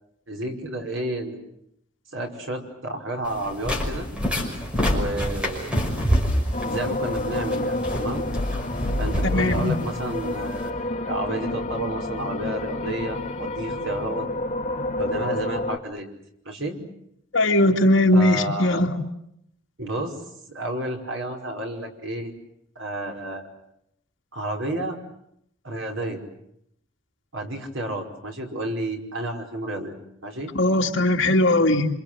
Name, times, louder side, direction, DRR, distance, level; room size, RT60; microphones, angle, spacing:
voice 1, 0.3-1.4 2.1-4.1 4.8-5.7 6.6-8.2 9.0-14.3 15.0-16.1 16.5-16.8 18.1-18.8 19.8-20.1 20.5-22.3 22.8-23.4 24.3-25.0 25.6-26.2 27.3-30.0 30.2-30.5, right 1 dB, 75° right, 2 dB, 5.2 m, -31 dB
sound 1, 3.2-10.7, equal, 5° right, 5.8 m, -27 dB
sound 2, 6.5-15.8, left 2 dB, 35° left, 1.7 m, -29 dB
voice 2, 9.2-9.7 17.3-18.9 30.5-31.9, left 1 dB, 65° left, 2 dB, 2.7 m, -19 dB
27.0 x 27.0 x 7.8 m, 0.75 s
head